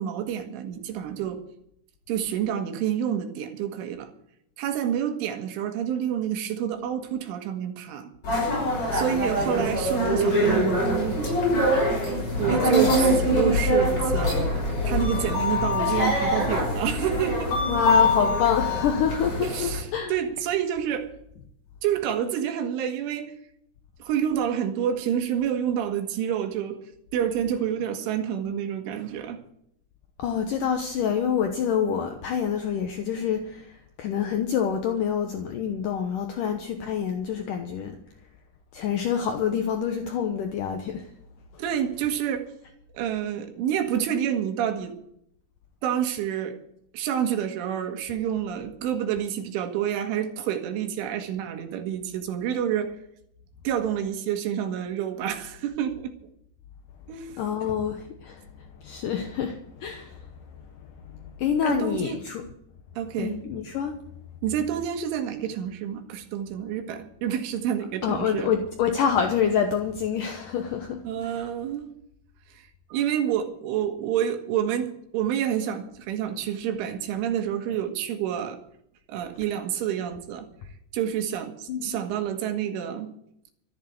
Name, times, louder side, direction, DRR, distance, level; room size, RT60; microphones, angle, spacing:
voice 1, 0.0-1.4 2.1-4.1 4.6-8.1 8.9-11.4 12.4-14.3 14.9-17.5 19.4-21.1 21.8-23.3 24.0-26.8 27.1-29.4 41.6-42.5 42.9-44.9 45.8-46.6 46.9-52.9 53.7-56.1 57.1-57.4 61.6-62.2 63.0-63.4 64.4-68.5 71.0-71.9 72.5-78.6 79.1-80.5 80.9-83.1, right 9 dB, 90° right, 6 dB, 4.0 m, -28 dB
sound 1, 8.2-19.8, left 1 dB, 30° left, 7.1 m, -24 dB
voice 2, 17.7-20.1 30.2-38.0 38.7-41.1 41.5-41.6 57.4-60.3 61.2-62.4 63.2-64.0 68.0-71.5 81.7-82.0, left 7 dB, 80° left, 5 dB, 1.9 m, -27 dB
14.0 x 9.4 x 8.0 m, 0.73 s
omnidirectional pair, 5.4 m